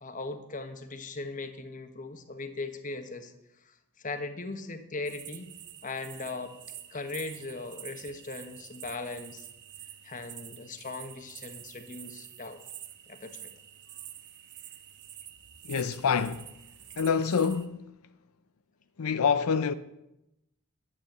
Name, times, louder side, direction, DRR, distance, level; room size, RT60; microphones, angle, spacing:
voice 1, 0.0-3.3 3.6-5.5 5.8-6.5 6.9-9.5 10.0-12.6 13.1-13.5, left 3 dB, 35° left, 1.2 m, -39 dB
sound 1, 5.0-17.7, right 11 dB, 55° right, 1.2 m, -47 dB
voice 2, 15.7-16.5 17.0-17.8 19.0-19.7, left 6 dB, 90° left, 0.6 m, -26 dB
12.0 x 9.3 x 8.0 m
head